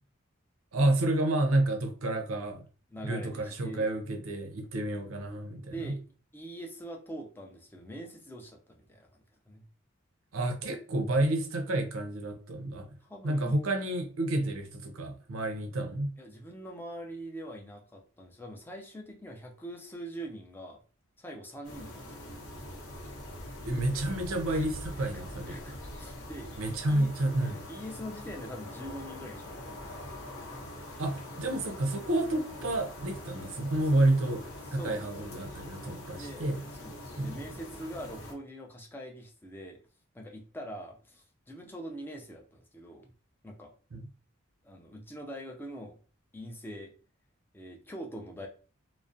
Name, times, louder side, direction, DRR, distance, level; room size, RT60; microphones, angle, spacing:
voice 1, 0.7-2.6 3.0-5.9 10.3-12.9 13.2-16.1 23.7-25.6 26.6-27.6 31.0-36.6 37.2-37.3 43.9-44.1, right 1 dB, 80° right, 0.5 m, -30 dB
voice 2, 2.9-3.9 5.7-6.0 6.3-9.7 13.0-13.6 16.2-20.8 21.2-22.5 24.5-26.5 26.9-27.1 27.4-30.1 34.7-35.5 36.1-36.5 36.8-39.8 40.1-43.1 43.4-43.7 44.6-46.0 46.3-46.9 47.5-48.5, equal, 10° left, 0.3 m, -44 dB
sound 1, 21.6-38.3, left 1 dB, 80° left, 0.8 m, -43 dB
2.4 x 2.0 x 2.5 m
head